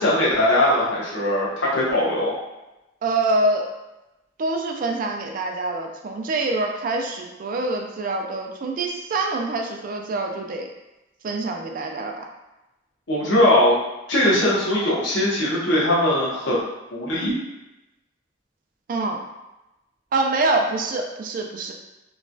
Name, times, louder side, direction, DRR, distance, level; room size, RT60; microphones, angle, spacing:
voice 1, 0.0-2.3 13.1-13.8 14.1-16.6 16.9-17.3, left 1 dB, 75° left, -6 dB, 0.9 m, -20 dB
voice 2, 3.0-3.7 4.4-10.7 11.2-12.2 18.9-19.2 20.1-21.7, right 2 dB, 45° right, 2 dB, 0.3 m, -25 dB
3.0 x 2.2 x 2.6 m, 0.98 s
head